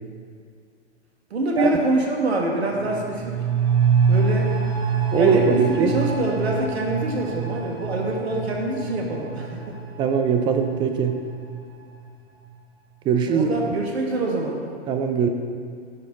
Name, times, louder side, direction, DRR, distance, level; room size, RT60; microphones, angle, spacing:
voice 1, 1.3-3.4 4.1-4.5 5.1-9.8 13.3-14.6, right 2 dB, 70° right, 0 dB, 1.5 m, -25 dB
sound 1, 2.7-12.1 12.4-12.5, right 6 dB, 45° right, 1.4 m, -26 dB
voice 2, 5.1-5.9 10.0-11.2 13.0-13.5 14.9-15.3, right 6 dB, 15° right, 6 dB, 0.4 m, -21 dB
11.0 x 4.2 x 4.0 m, 2.2 s
figure-of-eight pair, 100°, 33 cm